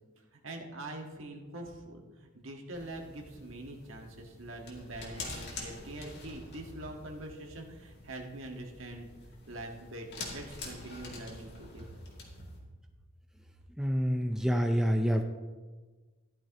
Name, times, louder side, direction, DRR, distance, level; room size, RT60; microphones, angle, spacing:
voice 1, 0.3-9.1 9.5-12.0, right 1 dB, 65° right, 2 dB, 1.6 m, -44 dB
sound 1, 2.7-12.6, left 2 dB, 50° left, 2.4 m, -46 dB
voice 2, 13.8-15.2, equal, 5° right, 4 dB, 0.5 m, -27 dB
14.0 x 11.5 x 3.0 m, 1.4 s
head